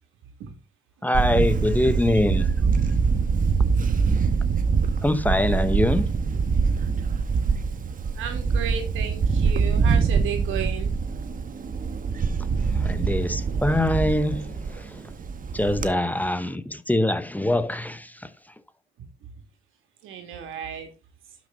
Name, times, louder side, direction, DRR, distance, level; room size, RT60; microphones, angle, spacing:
voice 1, 1.0-2.5 5.0-6.2 12.4-12.5 12.7-15.1 15.5-18.3, left 1 dB, 10° left, 0.8 m, -24 dB
Camera, 1.1-15.9, right 5 dB, 45° right, 1.1 m, -24 dB
voice 2, 8.2-10.9 12.4-12.6 20.0-20.9, right 8 dB, 90° right, 2.4 m, -33 dB
12.0 x 6.3 x 3.9 m
cardioid pair, 90°, 20 cm